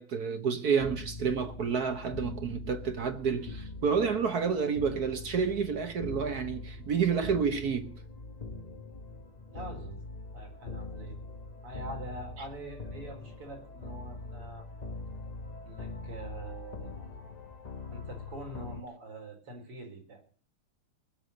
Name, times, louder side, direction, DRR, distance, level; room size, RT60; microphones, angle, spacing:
voice 1, 0.0-8.0, right 6 dB, 50° right, 1.3 m, -29 dB
sound 1, 0.8-18.8, left 3 dB, 35° left, 0.6 m, -43 dB
voice 2, 9.5-10.0 10.3-11.2 11.6-14.7 15.6-17.2 17.9-20.4, right 1 dB, 85° right, 5.1 m, -44 dB
20.0 x 6.9 x 7.9 m
omnidirectional pair, 2.4 m